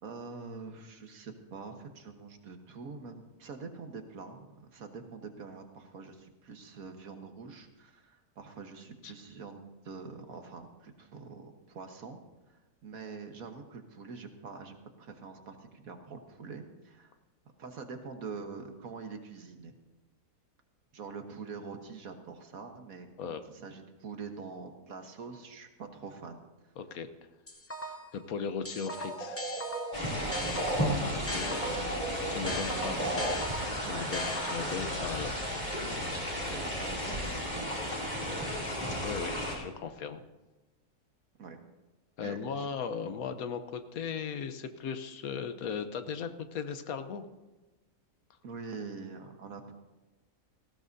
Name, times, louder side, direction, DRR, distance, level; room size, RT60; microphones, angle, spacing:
voice 1, 0.0-12.2 12.5-17.1 17.6-19.8 20.9-26.4 30.2-30.7 31.1-32.0 32.5-33.2 33.8-34.1 36.1-37.9 38.2-38.5 41.4-41.6 42.2-42.7 48.4-49.7, right 4 dB, 75° right, 5 dB, 1.7 m, -45 dB
voice 2, 26.8-27.1 27.8-29.4 31.0-31.5 32.3-32.9 33.8-35.4 39.0-40.2 42.2-47.2, left 6 dB, 75° left, 9 dB, 1.3 m, -37 dB
sound 1, 27.5-28.2 28.7-32.0 32.5-34.9, left 1 dB, 15° left, 0.5 m, -39 dB
sound 2, 28.9-30.9 31.3-33.3, right 2 dB, 30° right, 2.3 m, -36 dB
sound 3, 29.9-39.6, equal, 30° left, 3.0 m, -34 dB
18.0 x 15.5 x 2.7 m, 1.1 s
omnidirectional pair, 1.5 m